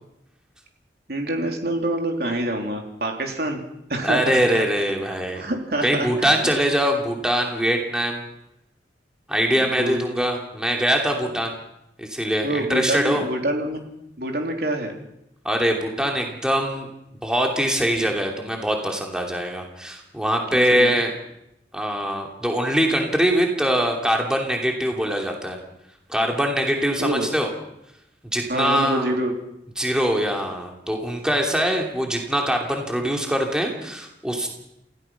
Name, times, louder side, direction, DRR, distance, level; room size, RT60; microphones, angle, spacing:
voice 1, 1.1-3.6 3.9-4.6 5.4-6.3 9.5-10.0 12.4-13.8 14.2-15.0 20.5-21.0 27.0-27.3 28.5-29.3, right 1 dB, 60° right, 2 dB, 3.6 m, -26 dB
voice 2, 4.0-5.4 5.8-8.2 9.3-11.6 12.0-13.2 15.4-16.9 17.2-21.1 21.7-25.6 26.1-27.5 28.3-29.2 29.8-34.5, equal, 5° right, 1 dB, 2.8 m, -23 dB
28.0 x 16.5 x 5.9 m, 0.83 s
head